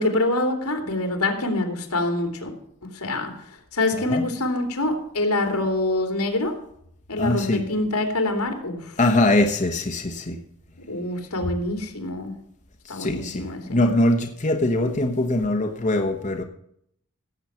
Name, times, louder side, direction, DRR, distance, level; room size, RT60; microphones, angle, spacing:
voice 1, 0.0-2.5 2.9-3.3 3.7-6.5 7.1-9.0 10.9-12.4 12.9-13.8, left 2 dB, 85° left, 2.9 m, -25 dB
voice 2, 7.2-7.6 9.0-10.4 12.8-16.4, left 1 dB, 35° left, 1.1 m, -22 dB
17.0 x 8.0 x 5.8 m
head